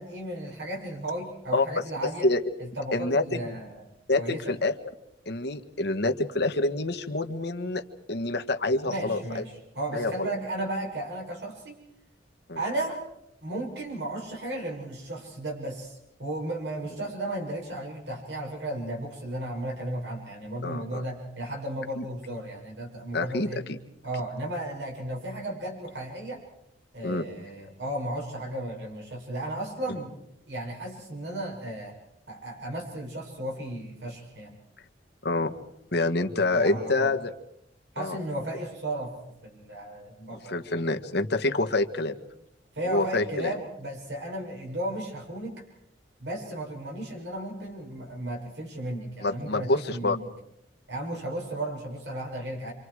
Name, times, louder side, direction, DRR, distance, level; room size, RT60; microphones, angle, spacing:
voice 1, 0.0-2.3 2.6-3.9 4.2-4.5 8.8-11.8 12.6-13.0 13.4-23.6 24.0-26.4 26.9-30.2 30.5-32.0 32.3-34.6 36.3-37.1 37.9-39.1 39.4-40.6 42.7-45.6 46.2-50.2 50.9-52.7, right 1 dB, 70° right, 0 dB, 6.4 m, -34 dB
voice 2, 2.0-2.4 2.9-3.4 4.1-4.7 5.3-7.8 8.1-9.5 9.9-10.3 12.5-12.6 20.6-21.0 22.0-22.1 23.1-23.8 27.0-27.2 35.2-35.5 35.9-37.3 38.0-38.2 40.3-42.1 42.9-43.5 49.2-50.2, left 2 dB, 65° left, 5 dB, 1.7 m, -27 dB
29.0 x 26.5 x 4.9 m, 0.78 s
head